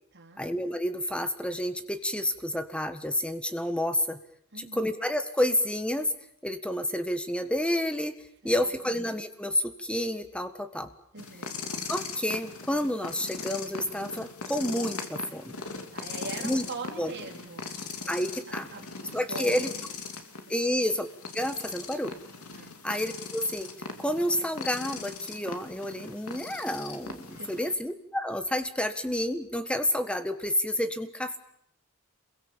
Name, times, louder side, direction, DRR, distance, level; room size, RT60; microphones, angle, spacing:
voice 1, 0.4-4.2 4.6-6.1 6.4-8.1 8.4-10.9 11.9-15.6 16.4-16.7 17.0-17.1 18.1-18.7 19.1-19.7 20.5-21.1 21.3-22.2 22.8-23.7 24.0-31.4, left 1 dB, 5° left, 9 dB, 1.6 m, -29 dB
voice 2, 4.5-4.9 8.4-8.6 8.8-8.9 11.1-11.5 15.9-18.2 18.7-19.8 20.5-20.6 22.5-22.8 27.3-27.7, right 3 dB, 55° right, 0 dB, 3.9 m, -42 dB
sound 1, 11.2-27.7, left 4 dB, 80° left, 2.9 m, -40 dB
28.0 x 22.5 x 7.4 m, 0.67 s
head